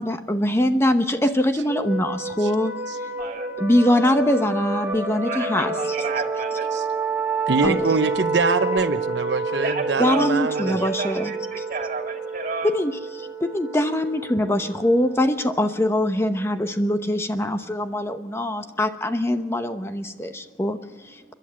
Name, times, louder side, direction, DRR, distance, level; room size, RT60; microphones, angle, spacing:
voice 1, 0.0-2.7 3.6-6.0 7.6-7.8 10.0-11.6 12.6-21.3, left 1 dB, 15° left, 8 dB, 0.9 m, -23 dB
sound 1, 1.7-17.0, right 4 dB, 15° right, 2.1 m, -29 dB
voice 2, 3.1-3.6 5.2-7.5 9.6-10.3 10.5-12.7 20.3-20.6 21.2-21.3, right 4 dB, 50° right, 3 dB, 2.6 m, -33 dB
voice 3, 7.5-10.8, right 3 dB, 80° right, 8 dB, 0.9 m, -24 dB
29.5 x 12.0 x 7.5 m, 1.2 s
head